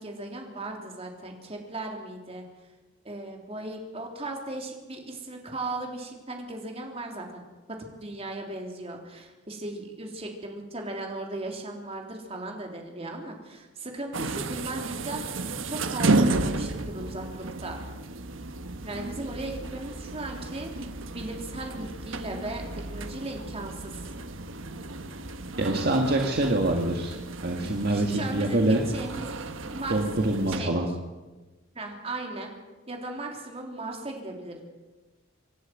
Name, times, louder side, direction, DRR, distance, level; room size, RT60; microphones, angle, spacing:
voice 1, 0.0-2.4 3.1-7.4 7.7-17.8 18.8-24.1 27.9-29.3 29.7-29.9 30.5-30.9 31.7-32.5 32.9-34.6, right 2 dB, 30° right, 1 dB, 3.5 m, -37 dB
sound 1, 14.1-30.6, right 2 dB, 80° right, 1.3 m, -32 dB
voice 2, 25.6-28.8 29.9-30.9, right 1 dB, 50° right, 1 dB, 2.0 m, -25 dB
25.0 x 11.0 x 9.5 m, 1.2 s
head